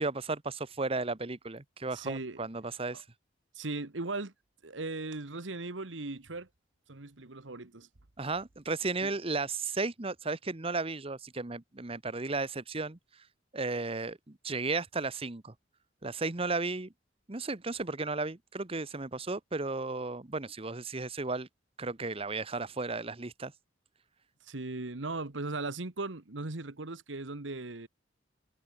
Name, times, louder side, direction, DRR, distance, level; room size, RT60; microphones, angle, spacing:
voice 1, 0.0-3.0 8.2-13.0 13.5-15.5 16.0-16.9 17.3-21.5 21.8-23.5, right 3 dB, 30° right, 1.1 m, -34 dB
voice 2, 1.9-2.4 2.9-3.0 3.5-4.3 4.6-6.5 6.9-7.9 9.0-9.1 24.4-27.9, right 3 dB, 85° right, 1.5 m, -38 dB
head